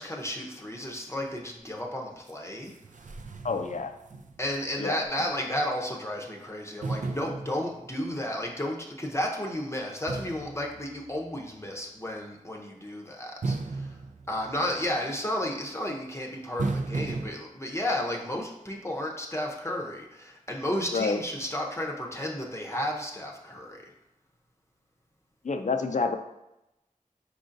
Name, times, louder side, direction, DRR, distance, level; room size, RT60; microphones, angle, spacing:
voice 1, 0.0-2.7 4.4-14.0 14.3-23.8, left 1 dB, 20° left, 0 dB, 0.7 m, -33 dB
sound 1, 2.3-2.4 2.7-4.7 5.0-5.1 6.8-8.2 10.1-11.5 13.4-15.0 16.6-17.3, right 3 dB, 65° right, 0.4 m, -35 dB
voice 2, 3.4-3.9 4.8-5.0 20.9-21.2 25.4-26.2, left 4 dB, 60° left, 7 dB, 0.4 m, -28 dB
4.8 x 3.8 x 2.6 m, 0.91 s
wide cardioid pair, 50°, 14 cm